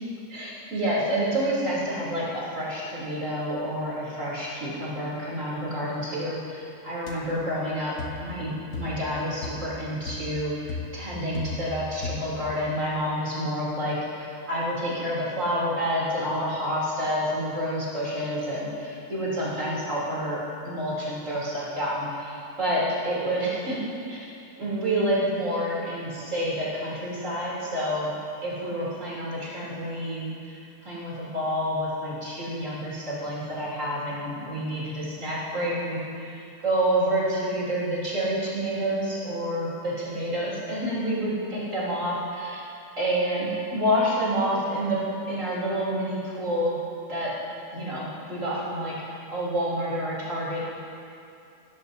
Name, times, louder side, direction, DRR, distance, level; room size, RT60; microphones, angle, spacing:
voice 1, 0.3-24.3 24.6-28.1 28.4-42.6 43.0-46.8 47.1-47.4 47.7-50.7, equal, 55° right, -7 dB, 3.8 m, -28 dB
sound 1, 7.1-7.2 8.0-8.3 8.7-9.1 9.4-9.7 10.1-10.4 10.7-11.8 12.0-12.4, left 3 dB, 85° left, 1.7 m, -35 dB
17.0 x 14.0 x 2.8 m, 2.6 s
omnidirectional pair, 1.6 m